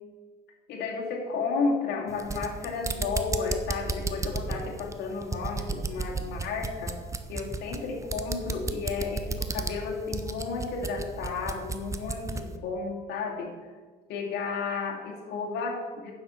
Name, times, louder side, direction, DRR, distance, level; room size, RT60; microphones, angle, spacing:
voice 1, 0.7-7.0 7.3-13.5 14.1-16.1, left 4 dB, 80° left, -1 dB, 2.6 m, -32 dB
sound 1, 2.1-12.5, right 4 dB, 20° right, 0.8 m, -33 dB
9.5 x 7.3 x 5.7 m, 1.5 s
cardioid pair, 110°, 17 cm